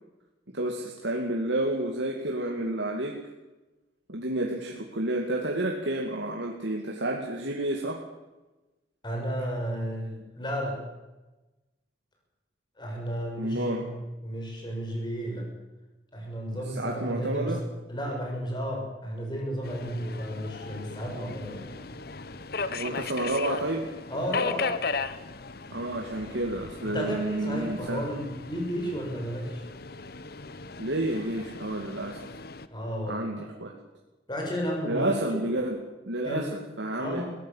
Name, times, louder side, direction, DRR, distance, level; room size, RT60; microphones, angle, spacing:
voice 1, 0.5-3.2 4.1-8.0 13.4-13.8 16.8-17.6 22.7-23.8 25.7-28.0 30.8-32.2 33.1-33.7 34.9-35.8 36.1-37.2, right 1 dB, 90° right, 0 dB, 2.5 m, -30 dB
voice 2, 9.0-10.8 12.8-15.5 16.1-17.6 17.9-21.8 24.1-24.7 26.8-29.7 32.7-33.5 34.3-35.2 36.2-36.6 37.0-37.3, equal, 25° left, 0 dB, 6.9 m, -33 dB
Subway metro underground, 19.6-32.7, left 4 dB, 55° left, 1.0 m, -37 dB
21.5 x 17.0 x 7.5 m, 1.1 s
head